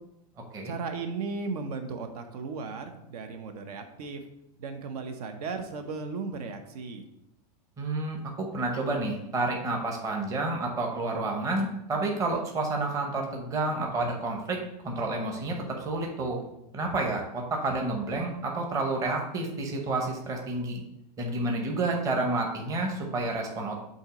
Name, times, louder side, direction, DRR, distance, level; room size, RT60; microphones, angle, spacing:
voice 1, 0.6-4.2 4.6-7.1, right 4 dB, 70° right, 6 dB, 0.9 m, -36 dB
voice 2, 7.8-16.4 16.7-20.8 21.2-23.8, right 2 dB, 15° right, 1 dB, 0.8 m, -30 dB
7.8 x 2.9 x 5.0 m, 0.84 s
supercardioid pair, 170°, 21 cm